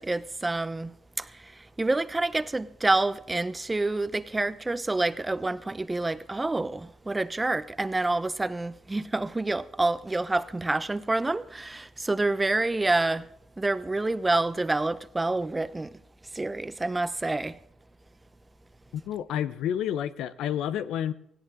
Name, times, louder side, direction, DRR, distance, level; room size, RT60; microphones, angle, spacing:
voice 1, 0.0-13.3 13.6-16.0 16.3-17.6, right 2 dB, 15° right, 0.8 m, -28 dB
voice 2, 19.1-21.1, left 10 dB, 85° left, 0.8 m, -29 dB
18.0 x 16.5 x 3.8 m
cardioid pair, 90°, 0 cm